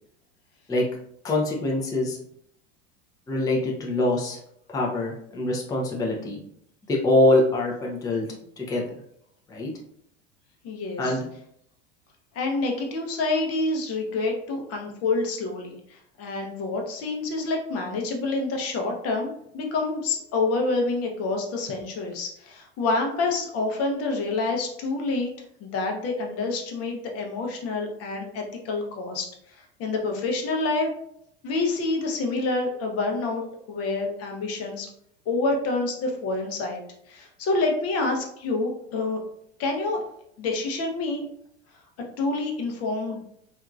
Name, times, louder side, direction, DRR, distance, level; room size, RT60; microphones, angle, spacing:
voice 1, 1.2-2.2 3.3-4.4 4.7-6.4 6.9-8.3 8.6-8.8 9.5-9.7 11.0-11.3, left 1 dB, 10° left, -3 dB, 0.5 m, -24 dB
voice 2, 10.6-11.2 12.3-25.3 25.6-29.3 29.8-30.9 31.4-34.9 35.3-36.8 37.1-39.2 39.6-40.0 40.4-41.2 42.2-43.2, left 3 dB, 45° left, 2 dB, 0.7 m, -27 dB
2.8 x 2.4 x 2.3 m, 0.72 s
hypercardioid pair, 90°, 34 cm